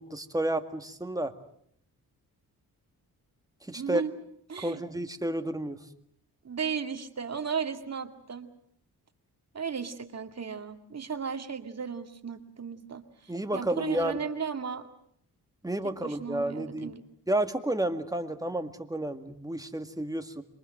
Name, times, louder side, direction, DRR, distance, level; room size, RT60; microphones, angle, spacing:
voice 1, 0.0-1.3 3.6-4.0 4.6-5.9 13.3-14.2 15.6-16.9 17.3-20.4, right 1 dB, 10° right, 7 dB, 2.0 m, -31 dB
voice 2, 3.7-4.1 4.5-4.8 6.4-8.5 9.5-14.9 16.0-17.0, right 6 dB, 40° right, 6 dB, 2.3 m, -35 dB
26.5 x 22.5 x 7.7 m, 0.68 s
cardioid pair, 75°, 38 cm